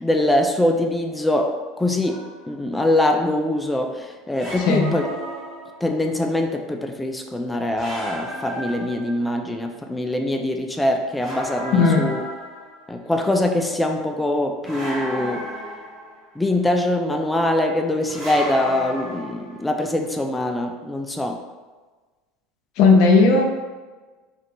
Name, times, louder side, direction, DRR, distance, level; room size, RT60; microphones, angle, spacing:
voice 1, 0.0-5.1 5.8-12.2 12.9-15.4 16.4-21.4, left 1 dB, 10° left, 4 dB, 0.3 m, -23 dB
sound 1, 2.0-2.6 4.3-6.0 7.8-9.5 11.2-12.9 14.6-16.4 18.1-19.7, equal, 35° right, 1.4 m, -33 dB
voice 2, 4.6-4.9 11.7-12.1 22.8-23.4, left 4 dB, 65° left, 2 dB, 0.5 m, -15 dB
2.7 x 2.4 x 3.6 m, 1.3 s
hypercardioid pair, 90°, 0 cm